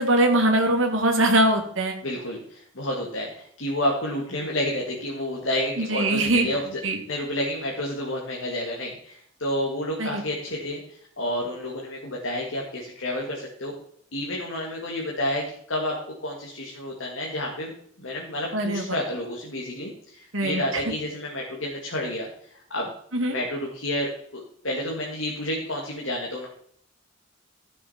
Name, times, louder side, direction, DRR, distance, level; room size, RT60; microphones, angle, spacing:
voice 1, 0.0-2.0 5.8-6.5 6.8-7.0 10.0-10.2 18.5-18.9 20.3-20.8 23.1-23.4, right 1 dB, 75° right, 3 dB, 2.2 m, -22 dB
voice 2, 2.0-6.8 7.1-13.7 14.1-22.9 23.3-26.5, left 1 dB, 75° left, -1 dB, 2.0 m, -30 dB
14.5 x 6.9 x 4.3 m, 0.67 s
head